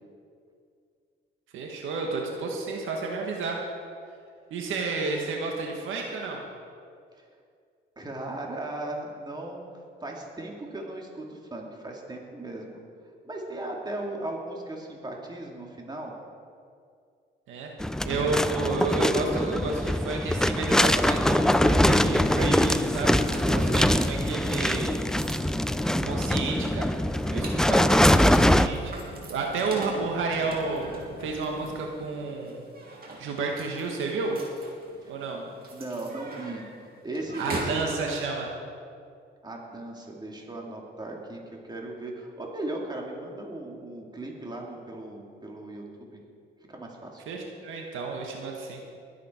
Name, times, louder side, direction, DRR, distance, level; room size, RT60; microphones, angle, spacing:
voice 1, 1.5-3.6 4.5-6.4 17.5-17.7 18.0-25.0 26.0-26.9 27.3-30.9 31.2-32.6 33.2-34.4 35.1-35.4 37.4-38.5 47.3-48.8, right 3 dB, 85° right, 1 dB, 1.9 m, -31 dB
voice 2, 8.0-9.6 10.0-12.8 13.2-16.1 35.0-36.6 37.0-38.1 39.4-46.2 46.7-47.2, right 2 dB, 20° right, -1 dB, 2.8 m, -37 dB
sound 1, 17.8-28.7, left 1 dB, 5° left, 0.5 m, -23 dB
sound 2, 20.7-31.9, left 2 dB, 40° left, 3.4 m, -45 dB
sound 3, 23.1-37.9, right 2 dB, 50° right, 3.0 m, -43 dB
21.5 x 8.4 x 4.7 m, 2.3 s
cardioid pair, 90°, 20 cm